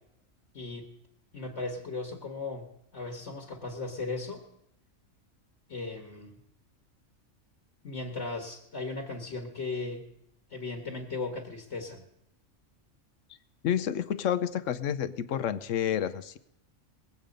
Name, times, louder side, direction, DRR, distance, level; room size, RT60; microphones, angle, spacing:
voice 1, 0.5-0.9 1.3-4.4 5.7-6.4 7.8-10.1 10.5-12.0, left 3 dB, 65° left, 4 dB, 1.6 m, -37 dB
voice 2, 13.6-16.4, left 9 dB, 85° left, 13 dB, 1.1 m, -29 dB
21.0 x 8.4 x 5.2 m, 0.80 s
omnidirectional pair, 1.3 m